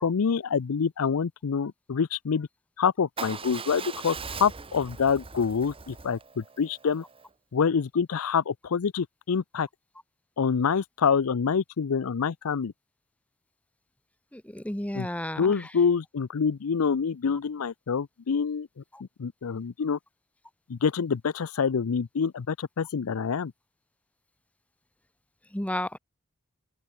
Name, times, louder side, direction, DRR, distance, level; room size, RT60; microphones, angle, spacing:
voice 1, 0.0-2.5 2.8-7.0 7.5-9.7 10.4-12.7 14.9-15.1 15.4-18.8 19.2-20.0 20.7-23.5, left 6 dB, 75° left, 0.5 m, -26 dB
Motorcycle / Engine starting / Idling, 3.2-7.3, right 5 dB, 25° right, 1.1 m, -40 dB
voice 2, 14.3-15.6 25.5-26.0, left 1 dB, 5° left, 1.1 m, -32 dB
open air
head